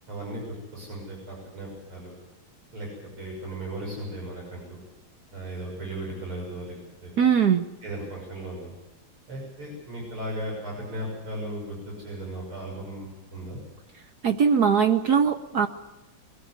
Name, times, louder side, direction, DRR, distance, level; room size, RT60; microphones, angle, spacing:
voice 1, 0.1-2.2 2.7-2.9 3.2-4.8 5.3-6.8 7.0-7.1 7.8-8.7 9.3-13.6, right 1 dB, 80° right, -2 dB, 7.5 m, -36 dB
voice 2, 7.2-7.6 14.2-15.7, right 7 dB, 60° right, 7 dB, 1.2 m, -21 dB
22.0 x 18.0 x 8.2 m, 0.99 s
omnidirectional pair, 2.3 m